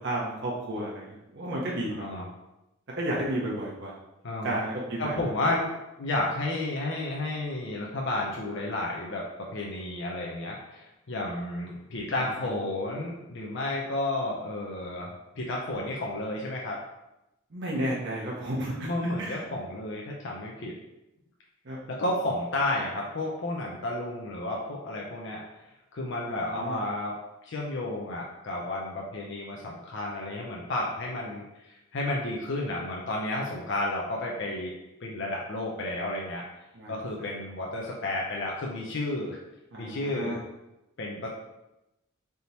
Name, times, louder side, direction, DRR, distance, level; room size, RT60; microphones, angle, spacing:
voice 1, 0.0-2.2 3.0-3.9 4.4-5.2 12.1-12.5 17.5-19.4 21.6-21.8 26.2-26.8 33.4-33.5 36.7-37.3 39.7-40.4, right 1 dB, 60° right, -4 dB, 0.8 m, -33 dB
voice 2, 4.2-4.6 5.0-5.7 6.0-16.8 18.8-20.7 21.9-25.4 25.9-27.2 27.4-34.7 35.0-36.4 36.9-39.4 39.8-40.4 41.0-41.3, left 2 dB, 60° left, -2 dB, 0.6 m, -32 dB
3.5 x 2.9 x 4.0 m, 0.94 s
head